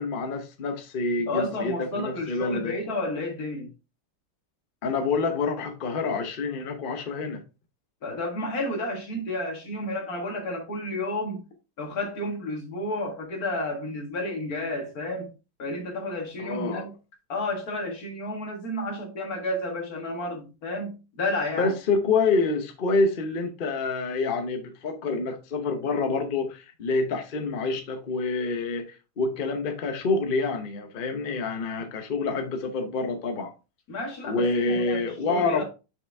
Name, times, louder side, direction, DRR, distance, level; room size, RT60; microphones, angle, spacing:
voice 1, 0.0-2.7 4.8-7.4 16.4-16.8 21.6-33.5 34.3-35.6, left 3 dB, 65° left, 0.5 m, -27 dB
voice 2, 1.3-3.7 8.0-11.4 11.8-15.3 15.6-16.9 17.3-21.7 33.9-35.6, left 1 dB, 45° left, 2.0 m, -31 dB
6.0 x 4.9 x 3.4 m
omnidirectional pair, 2.2 m